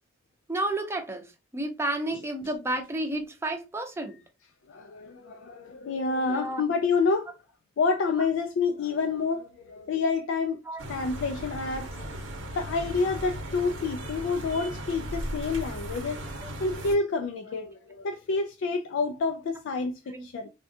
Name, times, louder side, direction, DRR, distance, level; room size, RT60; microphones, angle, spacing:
voice 1, 0.5-1.2 1.5-4.2 6.3-6.6 10.7-10.8 16.4-16.5 20.1-20.2, right 1 dB, 15° right, 0.5 m, -31 dB
voice 2, 4.7-7.3 7.8-10.6 10.9-11.9 12.5-16.2 16.6-20.5, left 4 dB, 80° left, 0.3 m, -28 dB
sound 1, 10.8-17.0, equal, 90° right, 0.8 m, -37 dB
3.5 x 2.3 x 2.6 m
head